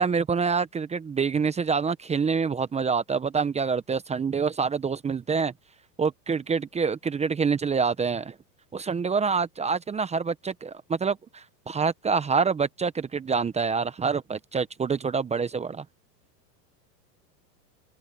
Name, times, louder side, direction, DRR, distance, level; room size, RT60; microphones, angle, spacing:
voice 1, 0.0-5.5 6.0-8.3 8.7-15.8, right 5 dB, 15° right, 0.9 m, -26 dB
hypercardioid pair, 120°, 49 cm